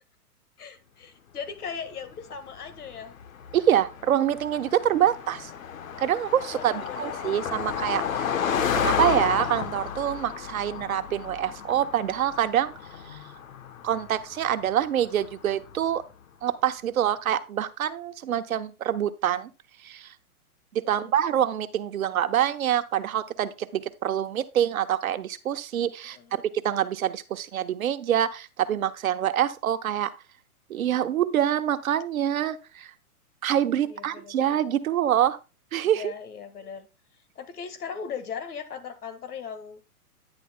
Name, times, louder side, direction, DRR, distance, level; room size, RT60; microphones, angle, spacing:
voice 1, 0.6-3.1 6.5-7.1 20.8-21.1 26.0-26.3 33.9-34.6 35.8-36.9 37.3-39.8, left 6 dB, 75° left, 1.7 m, -38 dB
Car passing by, 2.1-15.8, left 7 dB, 60° left, 1.1 m, -32 dB
voice 2, 3.5-5.5 6.0-8.3 8.8-12.7 13.1-13.2 13.8-16.0 16.4-19.5 19.8-20.1 20.7-30.1 30.7-32.9 33.4-35.4 35.7-36.1, right 10 dB, 65° right, 1.0 m, -26 dB
10.5 x 10.0 x 2.2 m
hypercardioid pair, 165°, 45 cm